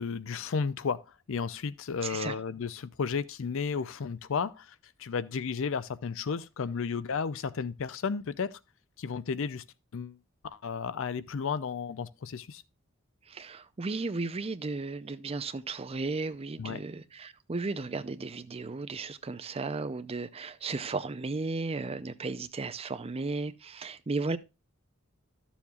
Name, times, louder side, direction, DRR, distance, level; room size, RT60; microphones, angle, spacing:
voice 1, 0.0-8.6 9.0-9.6 9.9-10.2 10.4-12.6 16.6-16.8, left 5 dB, 65° left, 0.5 m, -33 dB
voice 2, 2.0-2.4 13.3-24.4, right 3 dB, 30° right, 0.5 m, -35 dB
13.0 x 7.1 x 2.3 m
head